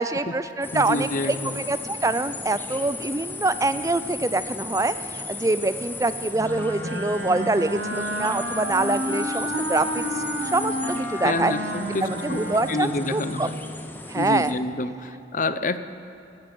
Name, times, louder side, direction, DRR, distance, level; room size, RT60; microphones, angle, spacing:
voice 1, 0.0-10.2 10.5-11.5 12.0-13.5 14.1-14.6, right 2 dB, 15° right, 13 dB, 0.4 m, -25 dB
sound 1, 0.6-14.5, left 3 dB, 10° left, 0.8 m, -36 dB
voice 2, 0.7-1.6 11.2-12.4 12.7-13.6 14.1-15.8, left 2 dB, 45° left, 12 dB, 0.6 m, -28 dB
Wind instrument woodwind instrument, 6.3-13.7, equal, 70° right, 2.0 m, -30 dB
12.5 x 11.5 x 9.3 m, 2.9 s
head